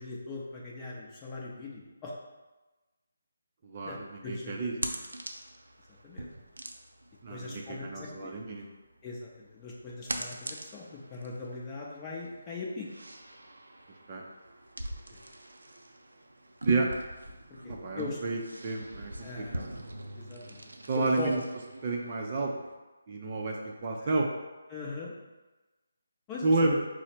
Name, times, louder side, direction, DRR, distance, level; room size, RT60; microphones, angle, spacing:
voice 1, 0.0-2.2 3.8-4.5 5.9-6.3 7.3-8.3 9.0-12.9 15.1-15.2 17.6-18.2 19.2-19.6 20.2-21.3 23.9-24.1 24.7-25.1 26.3-26.8, left 4 dB, 20° left, -4 dB, 0.7 m, -40 dB
voice 2, 3.6-4.7 7.2-8.7 14.1-14.2 16.6-16.9 17.7-19.7 20.9-21.4 21.8-22.5 23.1-24.3 26.4-26.7, right 3 dB, 35° right, 0 dB, 0.5 m, -30 dB
sound 1, 3.8-22.8, right 1 dB, 85° right, 0.5 m, -42 dB
4.7 x 2.1 x 4.3 m, 1.2 s
figure-of-eight pair, 155°, 0 cm